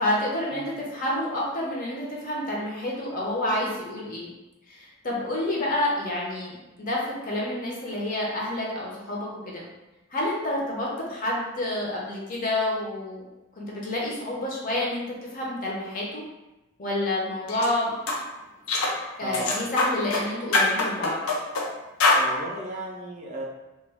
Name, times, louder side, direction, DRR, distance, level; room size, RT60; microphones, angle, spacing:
voice 1, 0.0-4.3 4.7-9.7 10.1-13.3 13.6-15.0 15.3-16.2 16.8-17.9 19.2-21.2, left 1 dB, 40° left, -4 dB, 0.6 m, -29 dB
sound 1, 17.5-17.7 18.1-18.2 18.7-19.0 19.3-20.2 20.5-21.7 22.0-22.2, left 2 dB, 85° left, 0.5 m, -23 dB
voice 2, 19.2-19.6 22.2-23.4, equal, 35° right, -3 dB, 0.5 m, -35 dB
2.3 x 2.2 x 3.4 m, 1.0 s
head